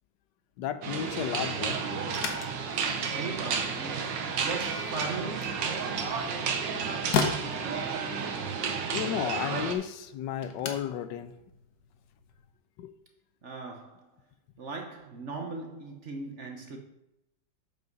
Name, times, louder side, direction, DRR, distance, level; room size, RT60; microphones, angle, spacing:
voice 1, 0.6-1.8 8.9-11.3 12.8-12.9, left 10 dB, 80° left, 1.2 m, -33 dB
sound 1, 0.8-9.7, right 5 dB, 75° right, 1.6 m, -32 dB
sound 2, 2.0-12.5, left 6 dB, 65° left, 1.5 m, -38 dB
voice 2, 3.1-4.1 4.4-5.8 13.4-14.1 14.6-16.8, right 3 dB, 45° right, 1.2 m, -38 dB
7.8 x 5.5 x 5.3 m
omnidirectional pair, 2.0 m